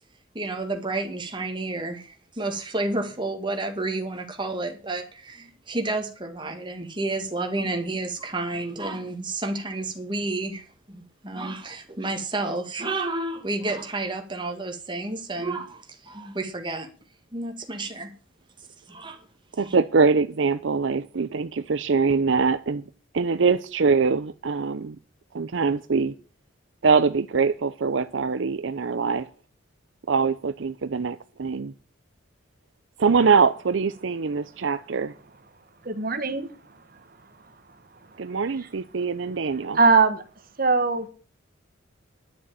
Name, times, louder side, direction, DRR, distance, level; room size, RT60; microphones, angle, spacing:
voice 1, 0.3-16.9 17.3-18.1 18.9-19.2 19.6-19.7, right 2 dB, 25° right, 2.1 m, -30 dB
voice 2, 19.6-22.8 23.1-25.0 25.3-26.1 26.8-29.3 30.1-31.7 33.0-35.1 38.2-39.8, right 5 dB, 65° right, 0.6 m, -23 dB
voice 3, 35.8-36.5 39.7-40.2 40.6-41.1, right 4 dB, 45° right, 1.3 m, -20 dB
11.0 x 6.9 x 8.9 m
head